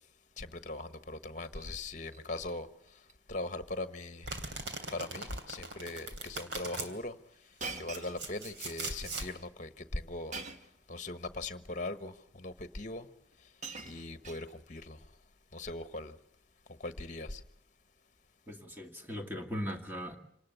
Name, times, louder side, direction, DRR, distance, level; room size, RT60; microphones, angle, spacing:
voice 1, 0.4-2.7 3.3-4.3 4.9-7.2 7.8-10.3 10.9-13.1 13.8-15.0 15.5-16.2 16.8-17.4, left 2 dB, 40° left, 1.2 m, -40 dB
Shatter, 1.3-1.7 2.1-2.5 2.9-3.1 3.4-3.5 4.4-4.6 4.9-5.2 5.9-6.0 7.6-8.7 10.3-10.8 11.8-11.9 13.0-13.1 13.3-14.8 15.8-16.1, right 3 dB, 40° right, 1.4 m, -45 dB
Domestic sounds home sounds, 4.3-6.9 7.6-9.3, right 3 dB, 65° right, 3.1 m, -40 dB
voice 2, 18.5-20.2, equal, 10° right, 2.1 m, -39 dB
27.0 x 19.0 x 8.1 m
head